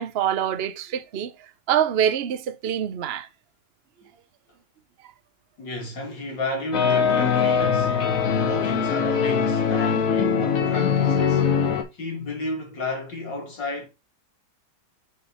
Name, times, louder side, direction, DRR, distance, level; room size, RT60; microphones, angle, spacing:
voice 1, 0.0-1.3 1.7-3.3, right 9 dB, 60° right, 0.6 m, -25 dB
voice 2, 5.6-11.5 11.9-13.9, left 2 dB, 85° left, 3.4 m, -33 dB
sound 1, 6.7-11.8, left 6 dB, 50° left, 1.5 m, -21 dB
6.2 x 5.8 x 2.9 m
omnidirectional pair, 1.9 m